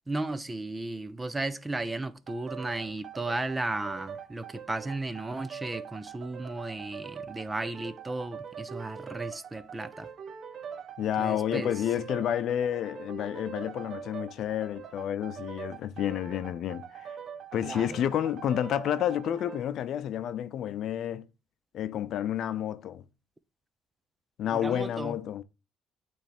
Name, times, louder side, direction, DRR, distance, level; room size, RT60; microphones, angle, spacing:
voice 1, 0.1-10.1 11.2-11.7 12.0-12.1 17.6-18.0 24.5-25.2, right 2 dB, 20° right, 0.7 m, -35 dB
sound 1, 2.3-19.7, right 7 dB, 55° right, 0.7 m, -43 dB
voice 2, 11.0-17.2 17.5-21.3 21.7-23.0 24.4-25.4, left 10 dB, 65° left, 0.6 m, -30 dB
8.9 x 3.4 x 4.3 m
supercardioid pair, 85°, 0 cm